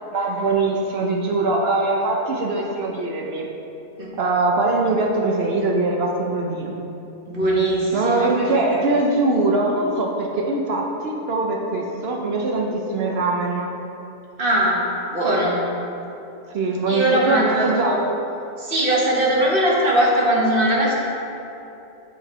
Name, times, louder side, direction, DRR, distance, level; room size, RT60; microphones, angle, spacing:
voice 1, 0.1-3.5 4.2-6.8 7.9-13.7 16.5-18.1, right 2 dB, 70° right, 0 dB, 0.5 m, -22 dB
voice 2, 7.3-8.9 14.4-14.8 15.1-15.6 16.9-18.0 18.6-20.9, right 1 dB, 35° right, -5 dB, 1.3 m, -20 dB
7.9 x 5.4 x 4.3 m, 2.9 s
omnidirectional pair, 1.8 m